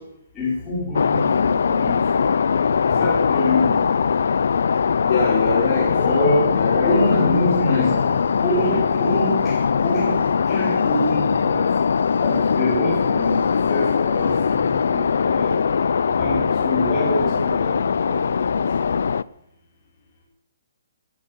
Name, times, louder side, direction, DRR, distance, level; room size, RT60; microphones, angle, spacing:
voice 1, 0.4-1.3 1.6-2.2 3.0-3.8 6.0-6.5 6.8-7.9 8.4-9.4 9.8-10.1 10.5-11.6 12.2-13.4 13.7-14.4 14.9-15.5 16.2-18.2 18.5-18.6, left 1 dB, 10° left, -10 dB, 5.5 m, -24 dB
sound 1, 0.9-19.2, left 6 dB, 65° left, 0.5 m, -21 dB
voice 2, 5.0-6.0 6.5-8.2, left 4 dB, 35° left, -4 dB, 4.2 m, -24 dB
12.5 x 12.5 x 9.0 m, 0.82 s
hypercardioid pair, 175°, 0 cm